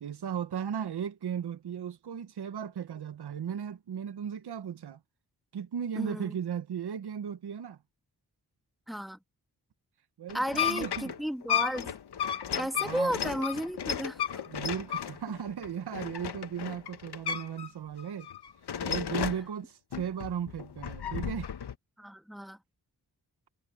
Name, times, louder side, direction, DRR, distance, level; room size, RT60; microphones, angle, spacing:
voice 1, 0.0-5.0 5.5-7.8 10.2-11.1 12.5-13.2 14.5-18.3 18.8-21.5, right 8 dB, 85° right, 1.0 m, -36 dB
voice 2, 6.0-6.3 8.9-9.2 10.3-11.9 12.6-14.4 22.0-22.6, equal, ahead, 1.8 m, -33 dB
sound 1, 10.3-17.7 18.0-19.5 19.9-21.7, left 9 dB, 90° left, 1.1 m, -34 dB
wide cardioid pair, 90°, 38 cm